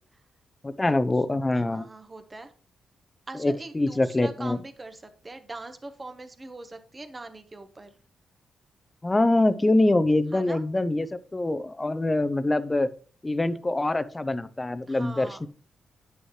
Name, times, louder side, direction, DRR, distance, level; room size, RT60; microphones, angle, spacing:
voice 1, 0.6-1.8 3.4-4.6 9.0-12.9 13.2-15.5, left 2 dB, 25° left, 13 dB, 0.6 m, -24 dB
voice 2, 1.5-2.5 3.3-8.0 10.3-10.6 14.9-15.4, right 2 dB, 30° right, 8 dB, 1.2 m, -42 dB
9.4 x 6.2 x 3.2 m, 0.43 s
supercardioid pair, 55°, 0 cm